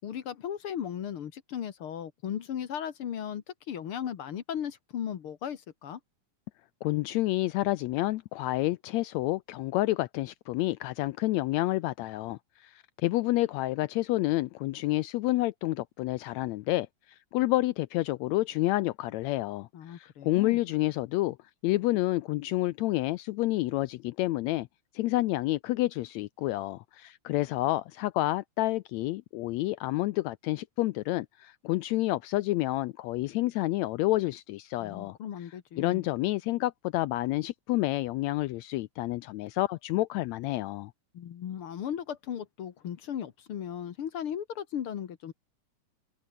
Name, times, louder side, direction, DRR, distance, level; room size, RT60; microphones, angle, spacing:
voice 1, 0.0-6.0 19.7-20.6 34.8-36.1 41.1-45.3, left 9 dB, 55° left, 1.8 m, -36 dB
voice 2, 6.8-16.9 17.3-21.4 21.6-24.7 24.9-35.2 35.8-40.9, left 17 dB, 80° left, 1.6 m, -29 dB
omnidirectional pair, 3.6 m